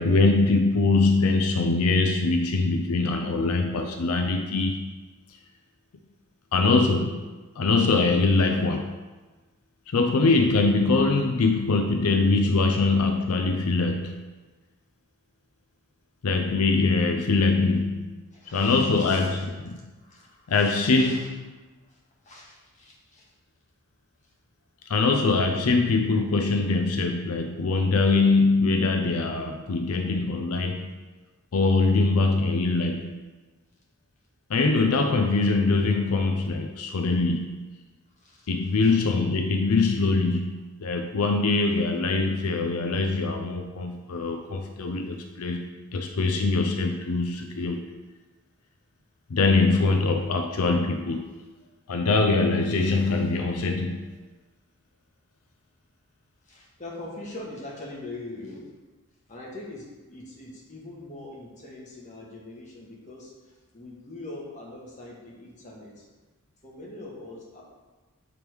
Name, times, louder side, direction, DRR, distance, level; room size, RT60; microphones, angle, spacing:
voice 1, 0.0-4.8 5.3-5.4 6.5-7.2 7.6-9.0 9.9-14.2 16.2-18.1 18.5-19.9 20.5-21.5 24.9-30.9 31.5-33.1 34.5-37.6 38.5-47.8 49.3-51.3 51.9-54.1, left 3 dB, 85° left, 4 dB, 0.5 m, -23 dB
voice 2, 18.3-19.4 19.7-21.3 21.9-22.0 22.2-23.3 38.2-38.5 38.8-39.0 56.4-58.6 59.3-66.0 66.6-67.6, left 2 dB, 35° left, -4 dB, 1.3 m, -42 dB
7.0 x 3.5 x 4.6 m, 1.3 s
head